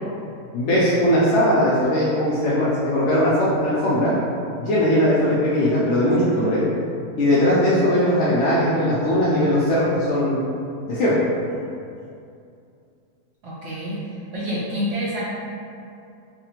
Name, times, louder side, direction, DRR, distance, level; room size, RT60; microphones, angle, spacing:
voice 1, 0.5-4.1 4.6-6.6 7.2-10.5 10.9-11.1, equal, 80° left, -9 dB, 0.6 m, -19 dB
voice 2, 13.4-14.0 14.3-15.2, equal, 75° right, -7 dB, 0.7 m, -27 dB
3.3 x 2.1 x 2.8 m, 2.5 s
omnidirectional pair, 1.8 m